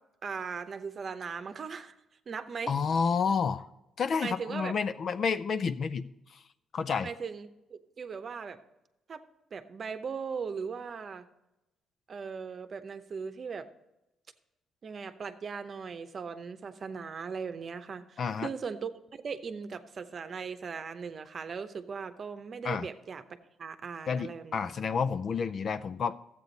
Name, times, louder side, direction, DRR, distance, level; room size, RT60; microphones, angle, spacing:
voice 1, 0.2-1.9 2.3-2.7 4.2-4.7 7.0-8.6 9.1-9.2 9.5-11.3 12.1-13.7 14.8-23.2 23.6-24.7, right 5 dB, 45° right, 9 dB, 0.8 m, -38 dB
voice 2, 2.7-3.7 4.0-6.4 6.7-7.1 18.2-18.5 22.6-22.9 24.1-26.2, left 6 dB, 55° left, 12 dB, 0.4 m, -30 dB
13.0 x 8.3 x 4.0 m, 0.94 s
cardioid pair, 90°, 0 cm